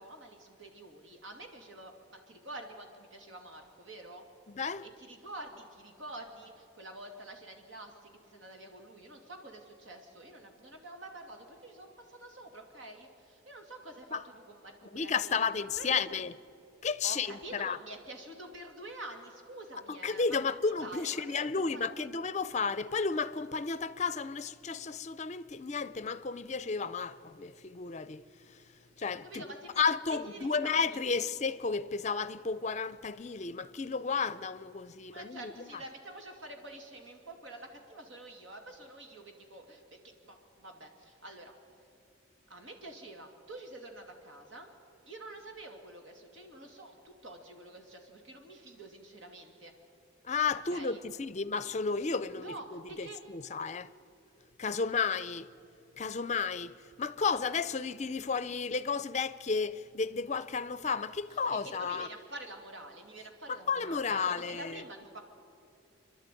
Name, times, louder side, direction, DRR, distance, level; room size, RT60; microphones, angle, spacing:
voice 1, 0.0-4.2 4.8-15.5 15.8-16.2 17.0-20.5 20.8-21.5 21.7-22.1 29.2-31.0 35.1-41.5 42.5-44.7 45.1-49.7 50.7-51.0 52.4-53.2 61.3-65.3, right 1 dB, 80° right, 2.6 m, -47 dB
voice 2, 4.6-4.9 14.1-14.2 14.9-16.3 16.8-17.8 19.9-28.2 29.0-29.5 29.8-35.7 50.2-53.9 54.6-55.5 56.0-62.1 63.5-64.8, left 5 dB, 35° left, 0.5 m, -33 dB
27.0 x 11.5 x 9.1 m
head